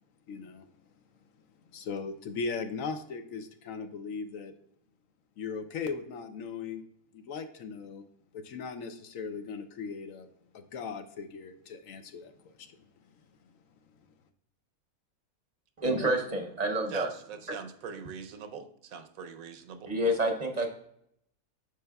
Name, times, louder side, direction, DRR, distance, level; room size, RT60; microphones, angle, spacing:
voice 1, 0.3-0.7 1.7-4.5 5.4-6.8 7.1-8.0 8.3-10.3 10.5-12.8, left 5 dB, 70° left, 8 dB, 1.0 m, -38 dB
voice 2, 15.8-17.1 19.9-20.7, right 1 dB, 35° right, 3 dB, 0.8 m, -28 dB
voice 3, 16.9-19.9, right 6 dB, 75° right, 8 dB, 1.1 m, -42 dB
9.5 x 6.7 x 2.3 m, 0.73 s
omnidirectional pair, 1.5 m